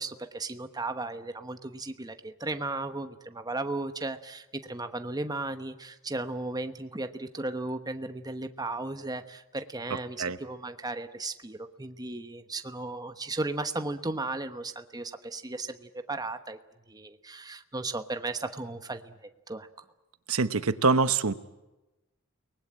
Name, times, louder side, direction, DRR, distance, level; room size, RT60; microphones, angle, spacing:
voice 1, 0.0-16.6 16.9-19.8, right 2 dB, 20° right, 8 dB, 1.1 m, -35 dB
voice 2, 20.3-21.3, right 4 dB, 85° right, 12 dB, 1.0 m, -24 dB
29.5 x 19.5 x 8.8 m, 1.1 s
head